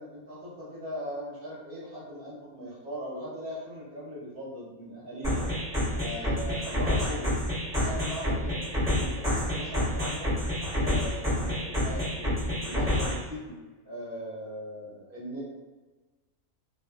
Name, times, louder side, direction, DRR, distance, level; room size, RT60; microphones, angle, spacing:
voice 1, 0.0-5.5 5.9-7.3 7.7-10.3 10.8-13.5 13.8-15.4, equal, 45° right, -7 dB, 0.9 m, -39 dB
sound 1, 5.2-13.2, left 1 dB, 5° right, 0.8 m, -28 dB
2.4 x 2.3 x 2.3 m, 1.3 s
omnidirectional pair, 1.6 m